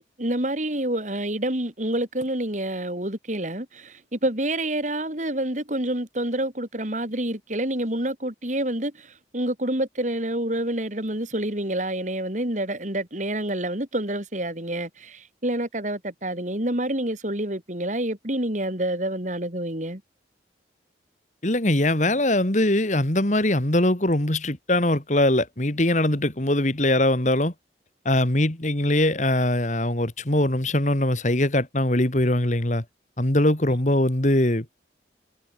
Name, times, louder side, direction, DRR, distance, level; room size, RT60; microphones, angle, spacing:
voice 1, 0.0-20.0, right 1 dB, 40° right, 3.4 m, -28 dB
voice 2, 21.4-27.5 28.1-32.8 33.2-34.7, left 1 dB, 40° left, 2.3 m, -22 dB
head